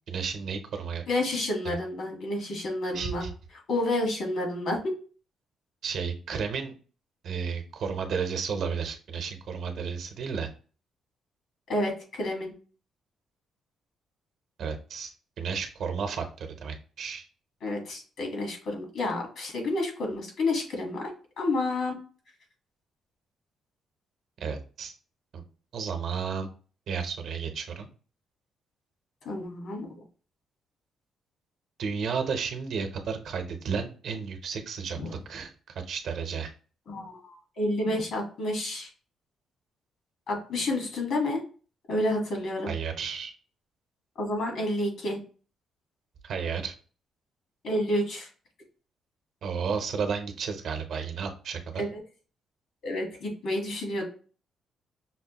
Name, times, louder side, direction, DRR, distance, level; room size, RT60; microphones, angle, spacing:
voice 1, 0.1-1.0 1.6-1.8 2.9-3.3 5.8-6.7 7.2-10.5 14.6-17.3 24.4-24.9 25.3-25.4 25.7-26.5 26.9-27.9 31.8-35.0 35.3-35.5 35.9-36.5 42.7-43.3 46.2-46.7 49.4-51.8, right 6 dB, 70° right, 6 dB, 0.7 m, -32 dB
voice 2, 1.1-3.2 3.7-4.8 11.7-12.5 17.6-21.1 21.4-21.9 29.2-29.9 34.9-35.2 36.9-38.9 40.3-41.4 41.9-42.7 44.2-45.2 47.6-48.3 51.8-52.0 52.8-54.0, left 1 dB, 70° left, 1 dB, 1.5 m, -29 dB
5.8 x 2.1 x 2.9 m, 0.39 s
cardioid pair, 90°, 0 cm